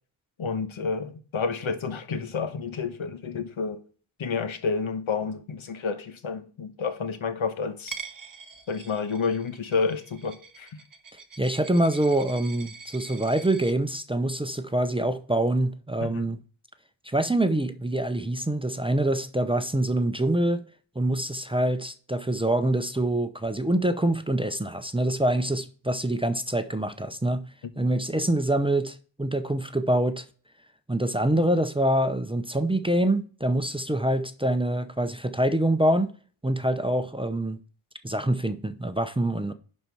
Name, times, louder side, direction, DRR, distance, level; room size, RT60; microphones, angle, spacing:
voice 1, 0.4-3.8 4.2-8.0 8.7-10.7 16.0-16.3 27.8-27.9, left 5 dB, 70° left, 1.2 m, -30 dB
Coin (dropping), 7.9-13.7, right 5 dB, 40° right, 1.0 m, -44 dB
voice 2, 11.4-16.4 17.0-20.6 21.0-27.4 27.8-30.2 30.9-36.1 36.4-37.6 38.0-39.5, right 1 dB, 10° right, 0.6 m, -25 dB
11.0 x 4.3 x 4.7 m
wide cardioid pair, 85°, 49 cm